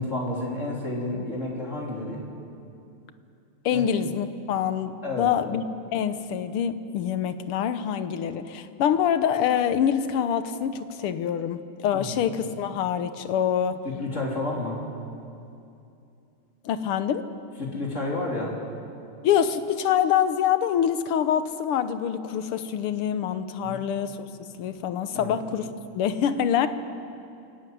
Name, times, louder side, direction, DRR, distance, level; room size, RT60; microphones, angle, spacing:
voice 1, 0.0-2.2 3.7-3.8 5.0-5.3 11.9-12.3 13.8-14.8 17.6-18.5 23.6-23.8 25.1-25.4, left 2 dB, 35° left, -3 dB, 3.8 m, -30 dB
voice 2, 3.7-13.8 16.6-17.3 19.2-24.3 24.6-25.7 25.9-26.7, left 9 dB, 85° left, 11 dB, 1.9 m, -25 dB
27.5 x 11.5 x 9.3 m, 2.6 s
omnidirectional pair, 2.4 m